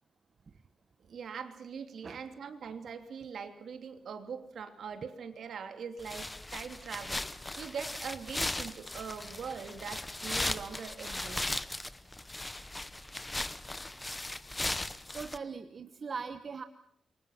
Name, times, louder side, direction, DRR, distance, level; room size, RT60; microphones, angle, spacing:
voice 1, 1.0-11.5, right 6 dB, 60° right, 7 dB, 3.0 m, -42 dB
sound 1, 6.0-15.4, left 2 dB, 10° left, 1.0 m, -37 dB
voice 2, 15.1-16.6, right 5 dB, 40° right, 9 dB, 1.2 m, -40 dB
28.0 x 24.5 x 5.8 m, 0.68 s
wide cardioid pair, 140°, 0 cm